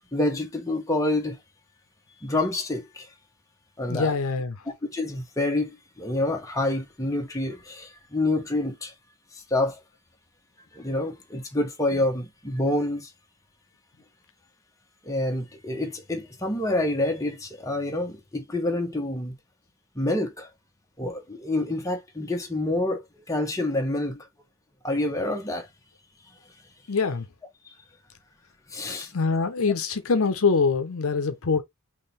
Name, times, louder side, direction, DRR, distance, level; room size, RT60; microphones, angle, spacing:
voice 1, 0.1-1.4 2.2-3.1 3.8-4.1 4.7-8.9 9.3-9.8 10.7-13.1 15.0-19.4 19.9-20.5 21.0-24.3 24.8-25.7 27.6-27.7 28.7-29.1, left 1 dB, 15° left, 1.1 m, -27 dB
voice 2, 3.9-4.6 26.9-27.3 29.0-31.6, left 4 dB, 70° left, 0.7 m, -24 dB
3.8 x 3.0 x 4.1 m
head